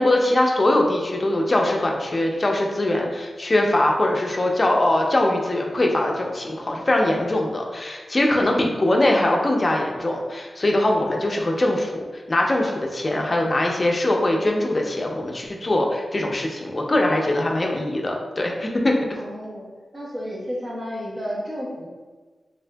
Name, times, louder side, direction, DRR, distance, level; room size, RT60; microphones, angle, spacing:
voice 1, 0.0-11.9 12.3-19.0, left 1 dB, 35° left, 0 dB, 0.4 m, -22 dB
voice 2, 19.2-19.6 19.9-21.9, equal, 40° right, -6 dB, 1.0 m, -31 dB
3.5 x 2.5 x 2.2 m, 1.4 s
wide cardioid pair, 85°, 0 cm